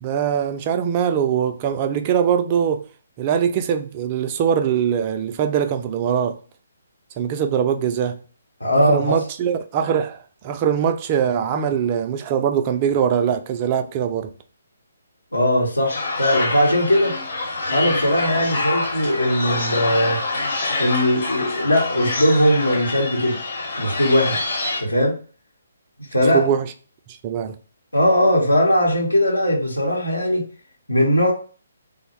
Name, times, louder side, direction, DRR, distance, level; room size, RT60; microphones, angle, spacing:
voice 1, 0.0-2.8 3.2-6.4 7.2-8.2 8.7-10.2 10.4-14.3 26.3-26.7 27.2-27.6, right 8 dB, 25° right, 0.3 m, -22 dB
voice 2, 8.6-9.1 15.3-17.1 17.7-20.2 20.8-23.4 23.8-24.5 24.8-25.2 26.1-26.5 27.9-30.4 30.9-31.3, equal, 80° left, 0.9 m, -19 dB
sound 1, 15.9-24.8, left 2 dB, 45° left, 0.9 m, -26 dB
3.3 x 2.1 x 3.0 m
figure-of-eight pair, 135°, 0 cm